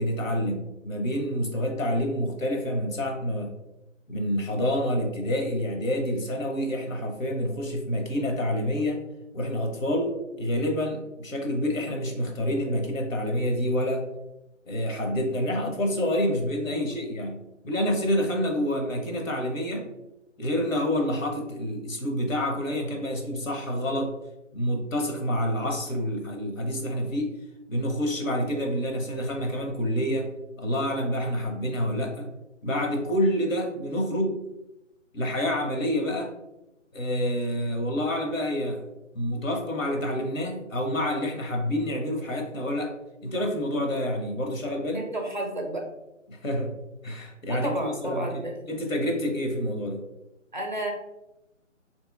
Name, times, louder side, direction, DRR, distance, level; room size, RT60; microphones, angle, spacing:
voice 1, 0.0-3.5 4.1-9.0 9.3-14.0 14.7-19.9 20.4-24.1 24.5-27.3 27.7-30.3 30.6-32.3 32.6-34.4 35.1-36.3 36.9-38.8 39.1-42.9 43.2-45.1 46.3-46.7 47.0-48.4 48.7-50.0, equal, 85° left, 1 dB, 0.9 m, -28 dB
voice 2, 44.9-45.8 47.5-48.8 50.5-50.9, right 1 dB, 40° right, 1 dB, 0.4 m, -32 dB
3.0 x 2.8 x 2.3 m, 0.92 s
figure-of-eight pair, 150°, 38 cm